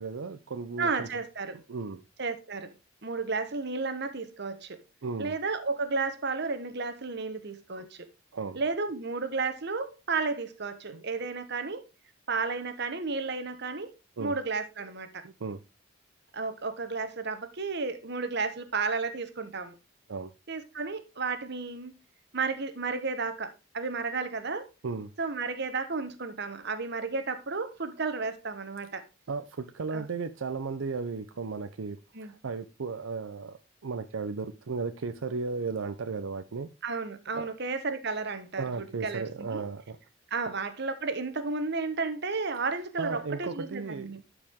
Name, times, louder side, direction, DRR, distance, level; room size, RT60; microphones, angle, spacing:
voice 1, 0.0-1.1 1.7-2.0 5.0-5.3 7.8-7.9 8.3-8.6 10.9-11.0 14.2-14.3 15.2-15.6 20.1-20.3 24.8-25.1 29.3-36.7 37.3-37.5 38.6-40.0 43.0-44.3, right 4 dB, 90° right, 0.6 m, -35 dB
voice 2, 0.8-1.6 2.2-2.7 3.0-4.8 5.2-8.1 8.5-11.8 12.3-13.9 14.2-15.2 16.3-19.7 20.5-21.9 22.3-24.7 25.2-29.0 29.9-30.0 32.1-32.3 36.8-39.6 40.3-44.2, right 4 dB, 60° right, 1.2 m, -32 dB
12.0 x 4.9 x 3.6 m
head